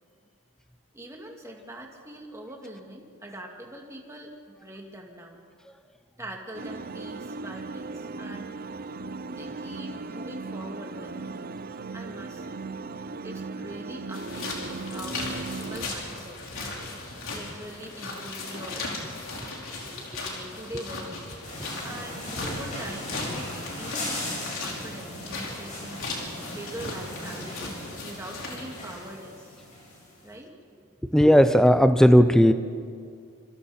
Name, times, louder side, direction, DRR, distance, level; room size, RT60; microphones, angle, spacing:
voice 1, 0.9-5.4 6.2-8.5 9.3-11.3 11.9-12.6 12.9-16.8 17.3-18.9 20.3-21.3 21.8-26.1 26.5-29.6 30.2-30.5, right 1 dB, 15° right, 0 dB, 2.5 m, -43 dB
sound 1, 6.5-15.9, right 3 dB, 40° right, 0.5 m, -37 dB
sound 2, 14.1-28.9, left 2 dB, 65° left, 4.7 m, -37 dB
sound 3, 21.4-30.2, left 1 dB, 35° left, 8.0 m, -38 dB
voice 2, 31.0-32.5, equal, ahead, 10 dB, 0.7 m, -16 dB
27.5 x 27.0 x 4.4 m, 2.2 s
head